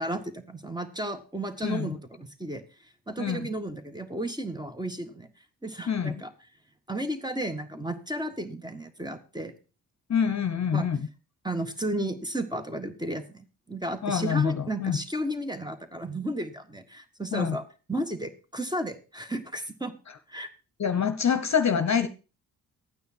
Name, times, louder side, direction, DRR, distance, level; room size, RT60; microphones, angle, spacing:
voice 1, 0.0-2.6 3.1-5.3 5.6-6.3 6.9-9.5 10.7-10.9 11.4-17.6 17.9-19.9 20.3-20.5, right 1 dB, 10° right, 8 dB, 1.8 m, -33 dB
voice 2, 5.9-6.2 10.1-11.1 14.0-15.0 17.3-17.6 20.8-22.1, left 7 dB, 35° left, 10 dB, 1.2 m, -26 dB
12.5 x 9.2 x 4.6 m, 0.34 s
hypercardioid pair, 45°, 45 cm